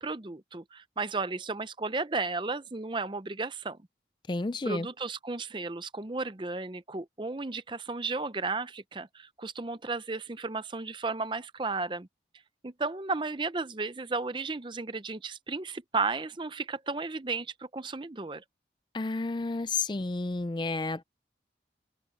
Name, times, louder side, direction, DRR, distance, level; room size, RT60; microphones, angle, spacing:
voice 1, 0.0-3.8 4.6-12.1 12.6-18.4, right 3 dB, 25° right, 0.6 m, -34 dB
voice 2, 4.3-4.9 18.9-21.0, left 3 dB, 25° left, 0.4 m, -31 dB
head